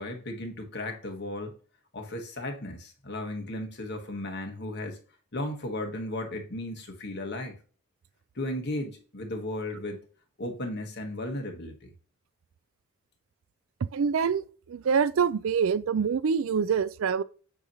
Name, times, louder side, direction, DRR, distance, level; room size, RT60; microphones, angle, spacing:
voice 1, 0.0-1.6 1.9-5.0 5.3-7.6 8.3-10.0 10.4-11.9, left 1 dB, 50° left, 1.5 m, -35 dB
voice 2, 13.9-17.2, right 6 dB, 65° right, 0.4 m, -26 dB
8.4 x 3.0 x 5.5 m
head